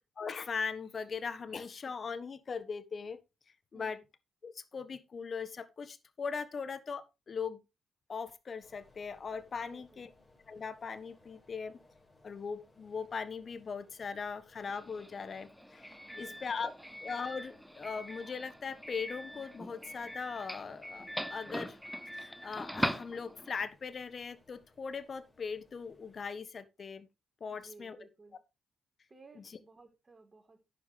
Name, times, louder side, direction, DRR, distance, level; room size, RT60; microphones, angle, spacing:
voice 1, 0.2-3.2 3.7-4.0 4.4-7.6 8.1-10.1 10.5-11.8 12.2-16.7 17.0-21.8 22.1-27.1 27.4-28.0 29.4-29.5, left 5 dB, 45° left, 1.5 m, -40 dB
voice 2, 3.7-4.0 9.6-10.1 16.1-16.4 27.5-28.4 29.1-30.6, right 3 dB, 30° right, 4.6 m, -57 dB
sound 1, 8.6-26.3, left 2 dB, 25° left, 6.1 m, -64 dB
Doorbell, 14.6-23.7, equal, ahead, 1.0 m, -41 dB
11.5 x 9.3 x 3.4 m
hypercardioid pair, 40°, 0 cm